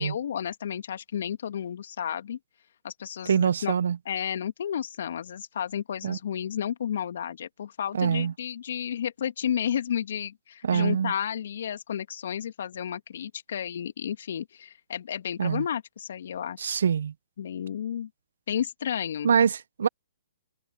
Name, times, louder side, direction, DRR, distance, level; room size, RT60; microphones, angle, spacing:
voice 1, 0.0-2.4 2.8-3.8 4.0-16.8 17.4-18.1 18.5-19.3, left 9 dB, 60° left, 2.8 m, -32 dB
voice 2, 3.3-4.0 6.0-6.2 7.9-8.3 10.6-11.1 15.4-15.6 16.6-17.1 19.2-19.9, right 7 dB, 65° right, 0.9 m, -24 dB
figure-of-eight pair, 130°, 0 cm